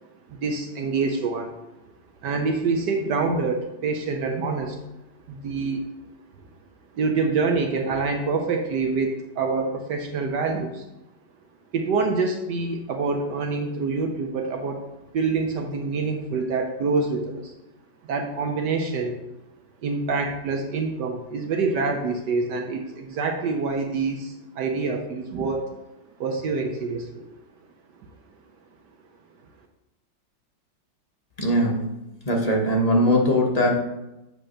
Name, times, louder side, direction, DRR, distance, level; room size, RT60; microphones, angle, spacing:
voice 1, 0.3-1.6 2.2-4.8 5.3-5.8 6.9-10.8 11.7-14.8 15.1-17.5 18.0-19.2 19.8-25.7 26.2-27.3, right 4 dB, 70° right, 3 dB, 1.3 m, -26 dB
voice 2, 31.4-31.9 32.2-33.8, equal, 25° left, -1 dB, 0.9 m, -20 dB
8.1 x 3.3 x 6.4 m, 0.94 s
omnidirectional pair, 2.0 m